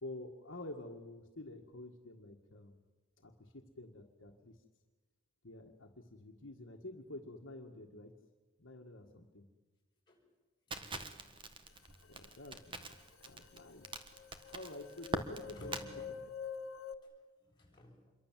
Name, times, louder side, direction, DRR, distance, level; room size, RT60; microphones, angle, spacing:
voice 1, 0.0-2.8 3.2-4.6 5.4-8.2 8.6-9.5 12.1-13.0 13.3-15.8, left 2 dB, 65° left, 3 dB, 1.8 m, -49 dB
voice 2, 10.7-11.1 15.4-16.1 16.6-16.7 17.0-18.1, left 1 dB, 20° left, -2 dB, 6.6 m, -56 dB
Crackle, 10.7-15.9, right 2 dB, 25° right, 1.5 m, -43 dB
sound 1, 12.9-13.0 13.2-17.0, left 6 dB, 85° left, 1.5 m, -47 dB
27.5 x 23.0 x 7.5 m, 1.2 s
head